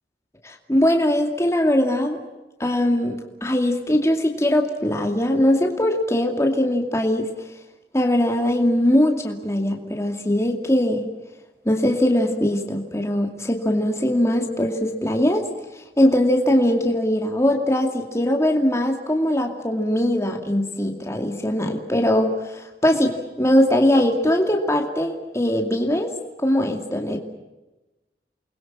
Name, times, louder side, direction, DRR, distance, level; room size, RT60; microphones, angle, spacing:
voice 1, 0.4-2.2 2.6-7.3 7.9-11.1 11.7-15.5 15.7-26.1 26.4-27.2, left 1 dB, 15° left, 3 dB, 2.4 m, -21 dB
29.0 x 21.5 x 7.4 m, 1.1 s
head